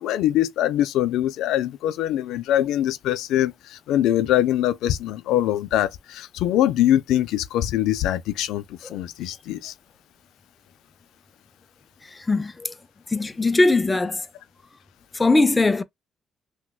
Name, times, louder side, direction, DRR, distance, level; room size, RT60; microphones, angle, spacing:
voice 1, 0.0-8.6 8.9-9.7, left 12 dB, 90° left, 0.3 m, -23 dB
voice 2, 12.3-12.7 13.1-14.2 15.1-15.8, left 2 dB, 20° left, 0.4 m, -20 dB
6.0 x 2.1 x 2.2 m
cardioid pair, 90°, 0 cm